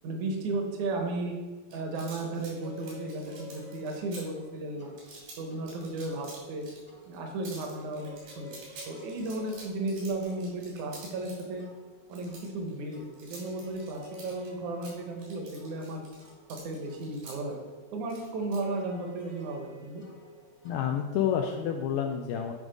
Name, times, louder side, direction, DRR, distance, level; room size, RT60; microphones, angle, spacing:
voice 1, 0.0-1.3 1.7-4.9 5.4-6.6 7.1-8.6 8.9-11.6 12.1-16.0 16.6-17.6 17.9-20.0, right 2 dB, 65° right, 2 dB, 2.0 m, -34 dB
sound 1, 1.7-4.2 5.0-5.4 5.7-6.8 7.0-7.2 7.4-11.4 12.1-14.5 14.8-17.3 18.1-18.6, right 3 dB, 85° right, 4.6 m, -48 dB
sound 2, 2.1-20.9, left 2 dB, 30° right, 0.5 m, -51 dB
voice 2, 20.7-22.5, left 8 dB, 90° left, 3 dB, 2.0 m, -29 dB
10.0 x 3.5 x 5.2 m, 1.3 s
omnidirectional pair, 4.6 m